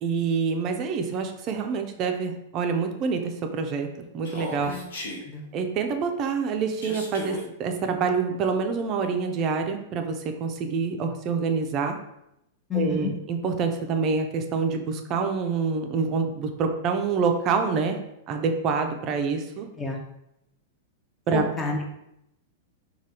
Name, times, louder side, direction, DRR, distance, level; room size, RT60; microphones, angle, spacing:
voice 1, 0.0-3.9 4.1-4.8 5.5-12.0 12.7-19.7 21.3-21.4, right 5 dB, 35° right, 5 dB, 0.4 m, -26 dB
Human voice, 4.2-5.2 6.8-7.4, left 1 dB, 80° left, 0.8 m, -35 dB
voice 2, 12.7-13.1 19.8-20.0 21.3-21.9, left 4 dB, 15° left, 1 dB, 0.6 m, -29 dB
3.2 x 2.3 x 2.8 m, 0.83 s
hypercardioid pair, 130°, 0 cm